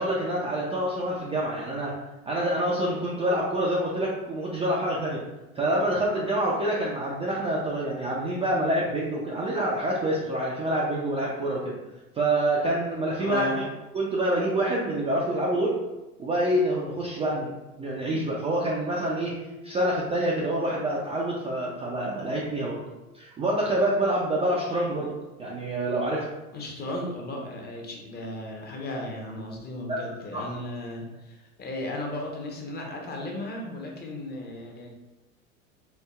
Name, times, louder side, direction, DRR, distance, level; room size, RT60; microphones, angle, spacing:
voice 1, 0.0-1.9 2.3-5.2 5.6-11.7 12.1-13.6 13.9-15.8 16.2-19.3 19.6-22.8 23.1-25.1 25.4-26.3 29.9-30.0 30.3-30.4, right 1 dB, 15° right, -5 dB, 0.4 m, -27 dB
voice 2, 13.2-13.6 26.5-34.9, left 1 dB, 25° left, 0 dB, 0.7 m, -35 dB
4.5 x 2.3 x 2.3 m, 1.0 s
hypercardioid pair, 90°, 41 cm